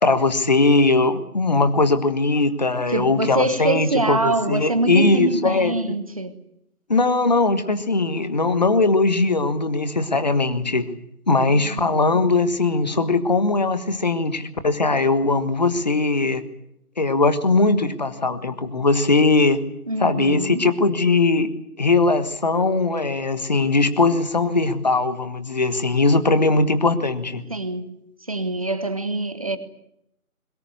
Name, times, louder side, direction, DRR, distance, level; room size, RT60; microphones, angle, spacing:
voice 1, 0.0-5.7 6.9-10.9 11.3-16.4 17.0-19.6 20.0-21.5 21.8-27.4, left 3 dB, 30° left, 1.4 m, -20 dB
voice 2, 2.9-6.3 11.5-12.0 19.9-20.8 27.5-27.9 28.3-29.6, right 2 dB, 25° right, 1.1 m, -25 dB
22.0 x 20.5 x 9.6 m
figure-of-eight pair, 155°, 44 cm